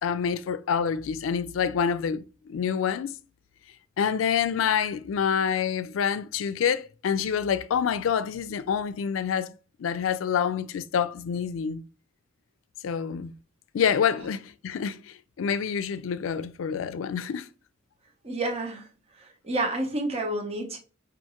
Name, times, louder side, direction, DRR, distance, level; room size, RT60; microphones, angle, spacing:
voice 1, 0.0-3.2 4.0-9.5 9.8-11.8 12.8-13.3 13.7-17.5, left 7 dB, 90° left, 0.4 m, -27 dB
voice 2, 18.2-18.9 19.4-20.8, right 2 dB, 30° right, 0.8 m, -29 dB
5.6 x 2.5 x 2.8 m
head